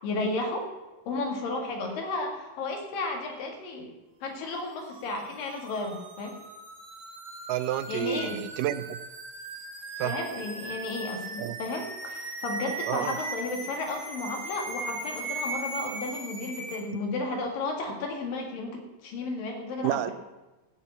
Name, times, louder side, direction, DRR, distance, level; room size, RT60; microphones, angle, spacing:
voice 1, 0.0-0.7 1.1-3.9 4.2-6.4 7.9-8.4 10.0-20.1, left 2 dB, 70° left, 2 dB, 3.6 m, -33 dB
sound 1, 4.5-16.8, right 2 dB, 30° right, 1.6 m, -39 dB
voice 2, 7.5-9.0 10.0-10.1 11.4-11.6 12.9-13.2 19.8-20.1, right 13 dB, 80° right, 12 dB, 1.9 m, -30 dB
15.0 x 7.0 x 8.5 m, 1.1 s
omnidirectional pair, 4.2 m